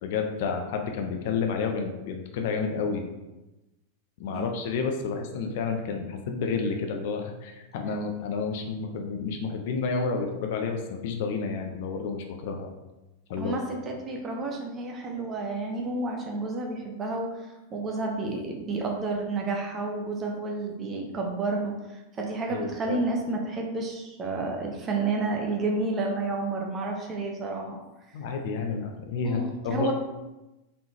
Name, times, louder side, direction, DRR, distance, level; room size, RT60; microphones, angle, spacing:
voice 1, 0.0-3.0 4.2-12.7 13.3-13.6 22.5-23.0 28.1-29.9, left 5 dB, 50° left, 3 dB, 0.5 m, -30 dB
voice 2, 13.4-21.7 22.1-27.8 29.2-29.9, right 3 dB, 25° right, 1 dB, 0.8 m, -30 dB
4.0 x 3.6 x 2.9 m, 1.0 s
figure-of-eight pair, 90°, 0 cm